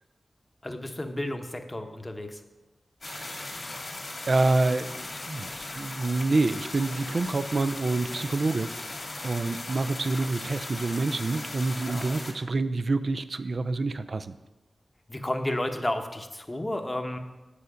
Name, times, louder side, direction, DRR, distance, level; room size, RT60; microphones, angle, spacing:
voice 1, 0.6-2.4 11.9-12.1 15.1-17.2, left 1 dB, 25° left, 6 dB, 0.9 m, -32 dB
sound 1, 3.0-12.3, left 2 dB, 55° left, 1.9 m, -38 dB
voice 2, 3.0-3.7 4.3-8.7 9.2-14.3, right 3 dB, 60° right, 12 dB, 0.4 m, -27 dB
8.0 x 6.9 x 5.0 m, 1.1 s
cardioid pair, 60°, 0 cm